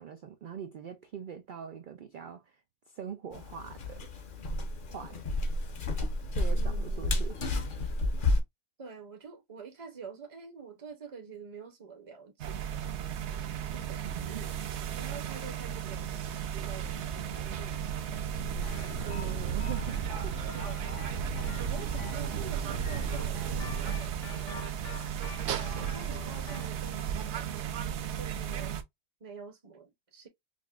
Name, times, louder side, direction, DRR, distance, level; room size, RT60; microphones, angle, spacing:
voice 1, 0.0-2.6 2.9-4.1 4.9-5.2 6.3-7.4 14.0-14.5 18.9-20.6, right 8 dB, 85° right, 0.4 m, -43 dB
sound 1, 3.3-8.4, left 1 dB, 45° left, 0.8 m, -31 dB
voice 2, 6.5-7.3 8.8-12.9 13.4-14.0 14.3-14.6 14.9-18.1 20.5-21.2 21.6-24.8 25.7-28.8 29.2-30.3, right 5 dB, 35° right, 0.6 m, -47 dB
sound 2, 12.4-28.8, right 8 dB, 65° right, 0.8 m, -34 dB
sound 3, 18.6-26.8, left 7 dB, 65° left, 1.1 m, -48 dB
5.1 x 2.0 x 2.3 m
omnidirectional pair, 1.4 m